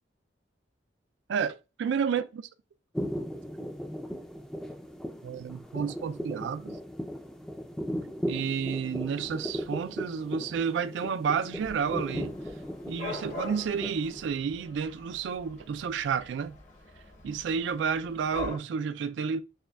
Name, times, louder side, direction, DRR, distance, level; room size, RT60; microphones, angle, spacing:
voice 1, 1.3-2.4 5.2-6.8 8.3-12.3 12.9-16.6 17.2-19.4, right 6 dB, 75° right, 0.3 m, -31 dB
sound 1, 2.9-14.3, equal, 5° left, 0.4 m, -37 dB
Dog / Cat, 11.5-18.6, left 2 dB, 40° left, 0.7 m, -43 dB
6.4 x 2.2 x 2.2 m
head